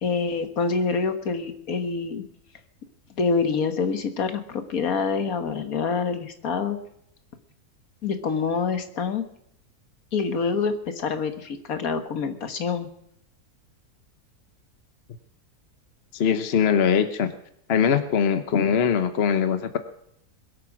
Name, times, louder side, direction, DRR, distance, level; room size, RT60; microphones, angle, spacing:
voice 1, 0.0-2.2 3.2-6.8 8.0-9.2 10.1-12.9, left 5 dB, 65° left, 8 dB, 1.7 m, -26 dB
voice 2, 16.1-17.3 17.7-19.8, left 7 dB, 45° left, 10 dB, 1.1 m, -22 dB
21.5 x 8.7 x 6.1 m, 0.73 s
omnidirectional pair, 1.6 m